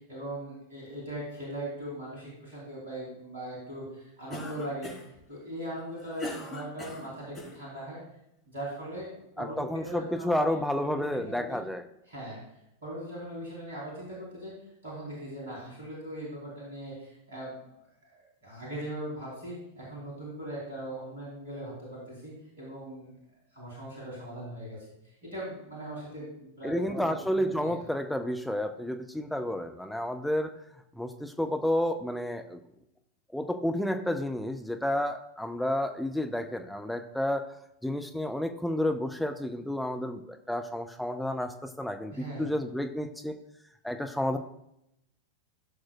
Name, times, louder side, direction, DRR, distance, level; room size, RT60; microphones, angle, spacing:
voice 1, 0.1-8.0 8.5-9.1 9.4-10.5 10.9-11.6 12.1-12.4 12.8-14.5 14.8-17.6 18.0-23.1 23.5-24.8 25.2-27.5 42.1-42.5, right 1 dB, 65° right, -6 dB, 3.5 m, -40 dB
Cough, 4.3-5.2 5.8-7.6, left 1 dB, 20° left, 3.4 m, -40 dB
voice 2, 9.4-11.8 26.6-30.5 31.0-32.6 33.3-37.5 37.8-43.4 43.8-44.4, left 1 dB, ahead, 6 dB, 0.6 m, -31 dB
15.5 x 6.3 x 2.4 m, 0.81 s
figure-of-eight pair, 90°, 0 cm